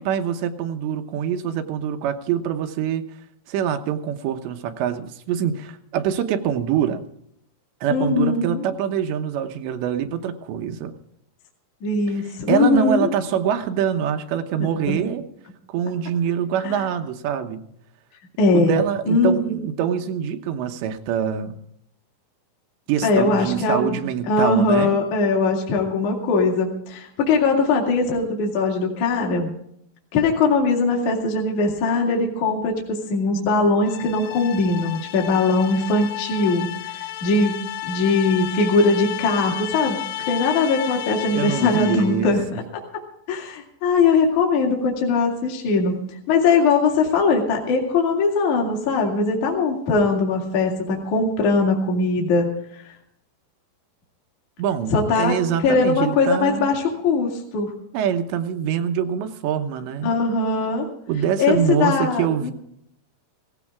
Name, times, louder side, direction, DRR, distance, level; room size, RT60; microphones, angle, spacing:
voice 1, 0.1-3.0 3.5-7.0 7.8-10.9 12.1-12.2 12.5-15.2 15.7-17.6 18.5-21.6 22.9-25.0 41.3-42.3 54.6-56.7 57.9-60.1 61.1-62.5, right 9 dB, 85° right, 6 dB, 3.3 m, -24 dB
voice 2, 7.9-8.6 11.8-13.1 14.6-15.0 16.6-16.8 18.4-18.8 19.1-19.6 23.0-24.0 24.3-29.5 30.1-37.6 37.8-40.0 40.3-42.5 43.3-52.9 54.9-55.4 55.6-57.7 60.0-60.9 61.4-62.5, left 3 dB, 50° left, 0 dB, 3.2 m, -21 dB
sound 1, 33.9-42.3, left 14 dB, 85° left, 3.1 m, -32 dB
17.5 x 16.0 x 3.6 m, 0.72 s
omnidirectional pair, 5.0 m